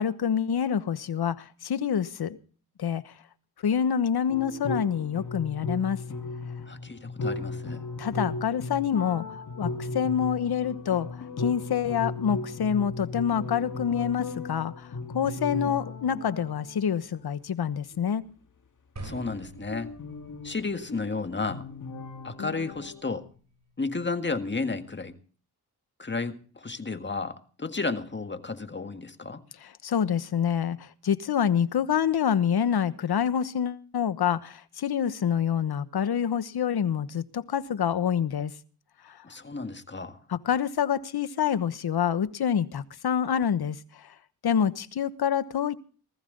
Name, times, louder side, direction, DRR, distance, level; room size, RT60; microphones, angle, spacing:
voice 1, 0.0-2.4 2.8-3.1 3.6-6.0 8.0-9.2 9.6-11.1 11.4-14.9 15.1-18.2 29.6-38.5 39.0-39.2 40.3-44.1 44.4-45.8, left 8 dB, 70° left, 1.2 m, -27 dB
sound 1, 4.3-16.9 19.1-23.0, left 3 dB, 50° left, 2.2 m, -36 dB
voice 2, 6.7-7.8 19.0-19.9 20.4-21.7 22.2-23.3 23.8-25.2 26.0-29.4 39.2-40.2, left 3 dB, 25° left, 1.8 m, -32 dB
sound 2, 19.0-25.1, right 2 dB, 45° right, 7.9 m, -49 dB
19.5 x 14.5 x 3.9 m
cardioid pair, 80°, 40 cm